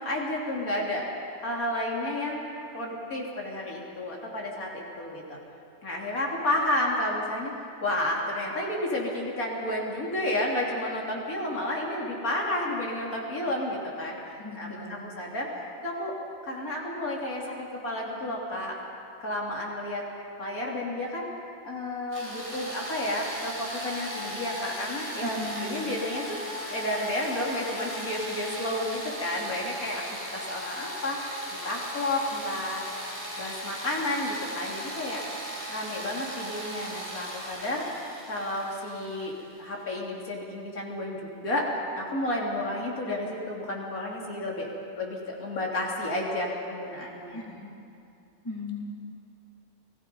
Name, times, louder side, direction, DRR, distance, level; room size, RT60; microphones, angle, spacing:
voice 1, 0.0-2.4 2.7-5.4 5.8-15.5 15.8-16.1 16.4-18.7 19.2-21.3 21.6-26.4 26.7-30.0 30.3-32.9 33.4-35.2 35.7-37.8 38.3-39.3 39.6-44.7 45.0-47.4, left 1 dB, 80° left, -3 dB, 3.5 m, -31 dB
voice 2, 14.4-15.0 25.2-25.7 47.3-47.6 48.4-48.8, left 3 dB, 15° left, -4 dB, 4.3 m, -37 dB
sound 1, 22.1-39.8, equal, 25° right, 5.2 m, -37 dB
30.0 x 19.5 x 5.4 m, 2.6 s
omnidirectional pair, 1.5 m